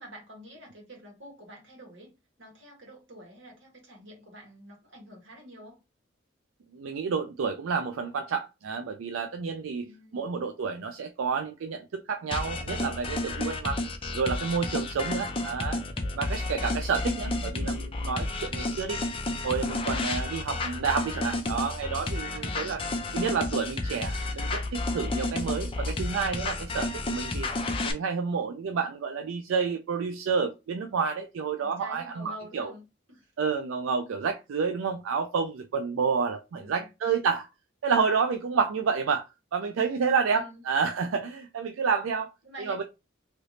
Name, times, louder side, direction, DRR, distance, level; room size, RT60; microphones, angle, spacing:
voice 1, 0.0-5.8 9.8-10.4 14.9-15.4 22.3-22.8 31.6-33.3 36.5-36.8 40.3-40.6 42.4-42.8, equal, 70° right, 1.6 m, -48 dB
voice 2, 6.7-9.9 10.1-13.8 14.1-15.8 16.1-19.0 19.4-22.8 23.1-27.5 27.9-32.7 33.4-37.5 37.8-42.3 42.6-42.8, right 5 dB, 90° right, 0.4 m, -29 dB
sound 1, 12.3-27.9, left 2 dB, 25° left, 0.5 m, -31 dB
3.2 x 2.9 x 2.6 m
head